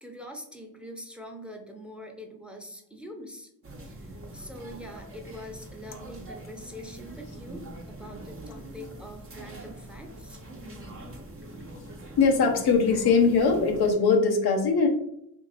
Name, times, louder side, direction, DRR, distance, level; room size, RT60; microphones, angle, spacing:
voice 1, 0.0-3.5 3.8-10.4, equal, 5° right, 3 dB, 0.8 m, -44 dB
sound 1, 3.6-13.9, right 1 dB, 35° right, 0.8 m, -43 dB
voice 2, 12.2-14.9, left 4 dB, 85° left, 3 dB, 0.7 m, -21 dB
2.8 x 2.7 x 4.0 m, 0.75 s
cardioid pair, 55°, 37 cm